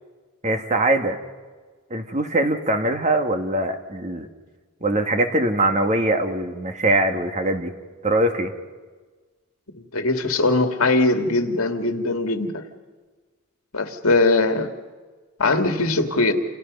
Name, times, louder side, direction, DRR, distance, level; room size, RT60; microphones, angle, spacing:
voice 1, 0.4-1.2 1.9-4.3 4.8-7.7 8.0-8.5, right 1 dB, 35° right, 5 dB, 1.8 m, -22 dB
voice 2, 9.9-12.6 13.7-14.7 15.4-16.3, left 2 dB, 75° left, 5 dB, 2.2 m, -20 dB
29.5 x 29.0 x 5.5 m, 1.4 s
head